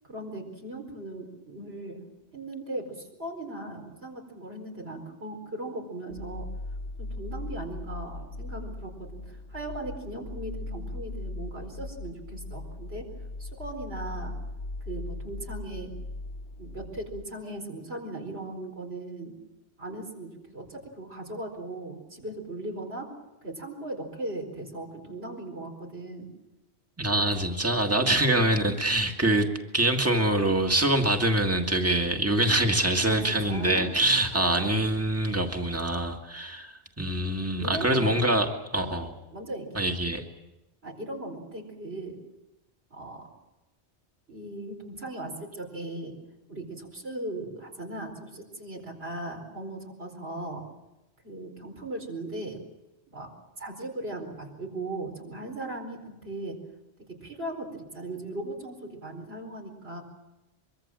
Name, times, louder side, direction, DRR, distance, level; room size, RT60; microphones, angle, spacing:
voice 1, 0.1-2.0 2.3-6.5 7.0-13.1 13.4-14.3 14.9-15.9 16.6-19.3 19.8-23.1 23.4-26.3 33.0-34.0 37.6-38.1 38.9-39.1 39.3-39.9 40.8-42.2 42.9-43.3 44.3-46.1 46.5-50.6 51.2-52.6 53.1-53.3 53.6-56.6 57.2-57.7 57.9-60.0, right 2 dB, 70° right, 2 dB, 4.8 m, -38 dB
sound 1, 6.1-17.3, left 2 dB, 65° left, 1.5 m, -39 dB
voice 2, 27.0-29.5 29.7-39.1 39.7-40.2, right 1 dB, 15° right, 4 dB, 2.0 m, -25 dB
24.0 x 23.5 x 7.6 m, 1.0 s
omnidirectional pair, 1.1 m